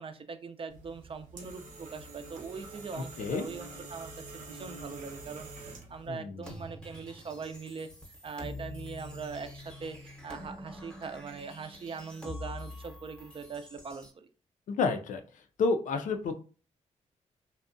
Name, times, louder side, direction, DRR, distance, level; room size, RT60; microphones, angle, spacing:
voice 1, 0.0-14.3, right 5 dB, 45° right, 9 dB, 0.4 m, -42 dB
sound 1, 0.7-6.1, right 3 dB, 80° right, 0.7 m, -46 dB
voice 2, 2.9-3.4 6.1-6.3 14.7-15.2 15.6-16.3, left 4 dB, 80° left, 7 dB, 0.4 m, -30 dB
sound 2, 6.4-14.1, left 1 dB, 5° left, 0.8 m, -45 dB
2.6 x 2.1 x 2.5 m, 0.37 s
cardioid pair, 65°, 13 cm